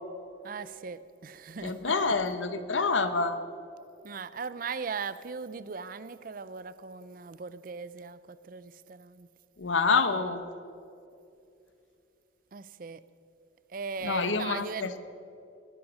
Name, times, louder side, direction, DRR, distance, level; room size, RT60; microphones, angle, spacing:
voice 1, 0.4-1.8 4.0-9.3 12.5-13.0 13.7-15.0, right 5 dB, 45° right, 15 dB, 0.5 m, -38 dB
voice 2, 1.6-3.4 9.6-10.4 14.0-14.9, left 4 dB, 90° left, 10 dB, 1.0 m, -27 dB
19.5 x 11.5 x 6.2 m, 2.7 s
head